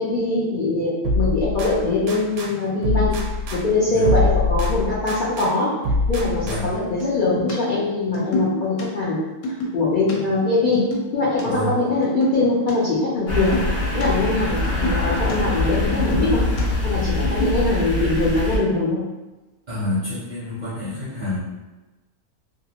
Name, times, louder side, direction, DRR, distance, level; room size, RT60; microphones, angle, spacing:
voice 1, 0.0-3.2 3.5-5.7 6.1-9.2 9.7-10.8 11.1-13.6 13.9-16.4 16.8-19.0, left 2 dB, 90° left, -8 dB, 0.4 m, -22 dB
sound 1, 1.0-2.5 2.8-5.5 5.8-6.9, left 2 dB, 75° right, 1.0 m, -24 dB
sound 2, 3.8-3.9 6.8-7.5 7.8-8.9 9.1-10.1 10.4-11.4 11.9-12.7 13.0-14.0 14.3-15.4 15.6-16.6 17.2-17.6, equal, 70° left, 1.0 m, -28 dB
voice 2, 11.4-11.7 19.7-21.4, left 1 dB, 50° right, -9 dB, 0.5 m, -28 dB
sound 3, 13.3-18.6, left 2 dB, 50° left, 0.8 m, -23 dB
2.6 x 2.4 x 2.8 m, 1.1 s
omnidirectional pair, 1.6 m